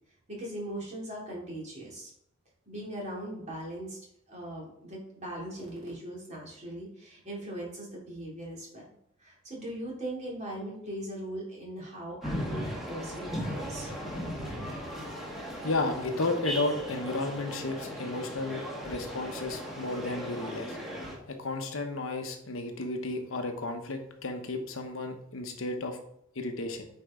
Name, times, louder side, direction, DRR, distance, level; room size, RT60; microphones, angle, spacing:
voice 1, 0.4-2.1 2.7-4.0 4.3-8.8 9.2-13.9, right 1 dB, 35° right, -4 dB, 2.9 m, -39 dB
sound 1, 12.2-21.1, equal, ahead, 1.6 m, -37 dB
voice 2, 15.6-20.8 21.3-26.0 26.3-26.9, left 2 dB, 80° left, 5 dB, 1.0 m, -33 dB
8.6 x 4.7 x 3.8 m, 0.72 s
head